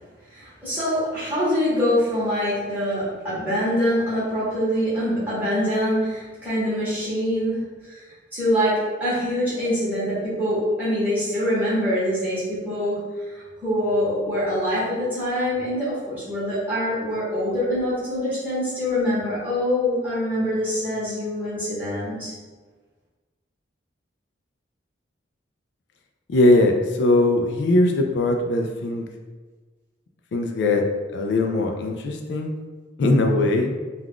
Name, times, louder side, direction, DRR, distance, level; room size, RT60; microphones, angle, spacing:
voice 1, 0.3-8.0 8.3-13.3 13.6-22.3, equal, 10° right, -11 dB, 1.0 m, -24 dB
voice 2, 26.3-29.1 30.3-30.8 31.1-32.5 33.0-33.7, left 2 dB, 60° left, 3 dB, 0.3 m, -20 dB
2.3 x 2.3 x 3.5 m, 1.3 s
head